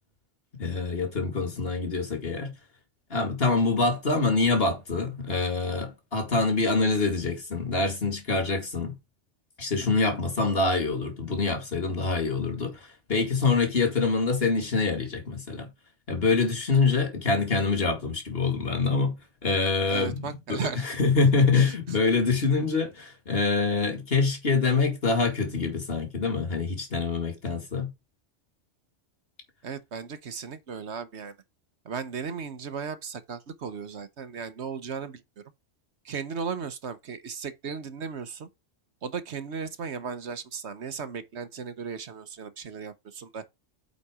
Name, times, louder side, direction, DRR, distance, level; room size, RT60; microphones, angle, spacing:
voice 1, 0.6-2.5 3.1-9.0 9.6-15.7 16.1-27.9, left 4 dB, 55° left, 2.4 m, -25 dB
voice 2, 19.9-20.9 21.5-22.0 29.6-31.3 31.8-35.2 36.0-38.5 39.0-43.4, right 6 dB, 70° right, 1.3 m, -36 dB
8.3 x 4.2 x 4.9 m
omnidirectional pair, 1.2 m